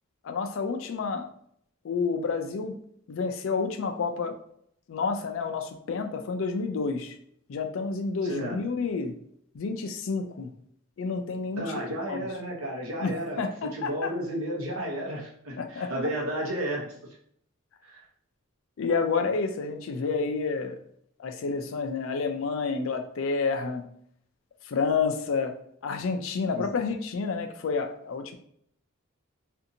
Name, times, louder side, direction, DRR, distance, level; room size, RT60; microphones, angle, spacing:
voice 1, 0.2-1.3 1.8-2.8 3.1-4.4 4.9-7.2 7.5-9.1 9.5-10.5 11.0-12.3 13.0-14.1 15.6-15.9 18.8-20.8 21.2-23.8 24.6-25.5 25.8-28.4, left 4 dB, 65° left, 5 dB, 0.4 m, -29 dB
voice 2, 8.2-8.6 11.6-13.5 13.7-17.2 17.8-18.0 26.5-26.6, right 1 dB, 75° right, -2 dB, 0.9 m, -32 dB
2.6 x 2.5 x 2.7 m, 0.68 s
head